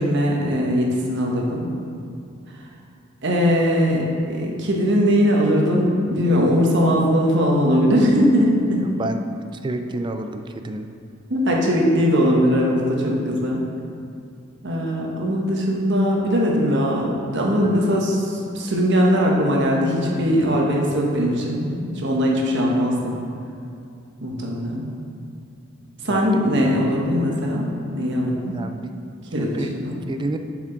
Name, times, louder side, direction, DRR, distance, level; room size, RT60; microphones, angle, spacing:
voice 1, 0.0-1.7 3.2-8.9 11.3-13.6 14.6-23.2 24.2-24.8 26.0-28.6 29.3-29.9, equal, 60° right, -1 dB, 1.1 m, -20 dB
voice 2, 8.8-9.2 9.6-10.9 17.6-17.8 24.7-24.8 26.1-26.4 28.5-28.9 29.4-29.7 30.1-30.4, right 2 dB, 25° right, 7 dB, 0.3 m, -29 dB
7.2 x 5.0 x 3.9 m, 2.5 s
head